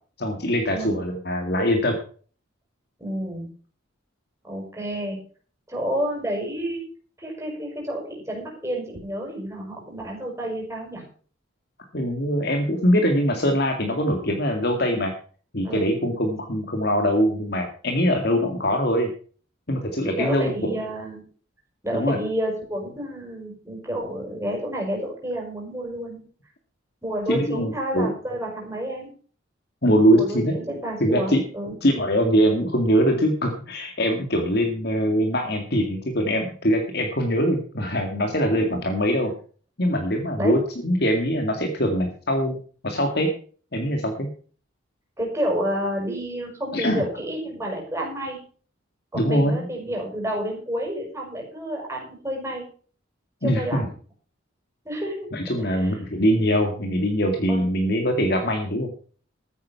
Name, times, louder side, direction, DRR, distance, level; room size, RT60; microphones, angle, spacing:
voice 1, 0.2-1.9 11.9-15.1 15.5-19.1 19.7-20.7 21.9-22.2 27.3-28.1 29.8-30.5 31.0-31.4 31.8-39.3 39.8-42.6 42.8-43.3 43.7-44.3 46.7-47.0 49.1-49.6 53.4-53.9 55.3-58.9, equal, 55° left, 3 dB, 2.1 m, -22 dB
voice 2, 3.0-3.5 4.4-5.2 5.7-6.8 7.2-11.0 15.6-15.9 20.0-21.2 21.8-26.2 27.0-29.1 30.1-31.8 38.5-38.8 40.4-40.6 45.2-48.4 49.1-52.7 53.4-53.9 54.8-55.3 55.6-56.0 57.5-57.7, equal, 15° right, -1 dB, 6.0 m, -30 dB
14.0 x 9.4 x 5.8 m, 0.43 s
head